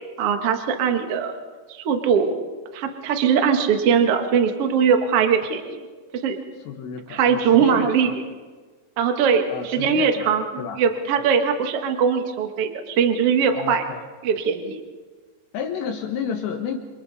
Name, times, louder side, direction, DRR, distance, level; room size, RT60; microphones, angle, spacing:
voice 1, 0.2-1.3 1.7-2.3 2.7-5.8 6.2-6.4 7.1-8.1 9.0-10.4 10.8-13.8 14.2-14.8, right 7 dB, 60° right, 5 dB, 1.6 m, -21 dB
voice 2, 6.7-8.2 9.5-10.8 13.5-14.0 15.5-16.8, left 7 dB, 75° left, 2 dB, 3.5 m, -31 dB
27.5 x 27.0 x 4.2 m, 1.4 s
omnidirectional pair, 5.2 m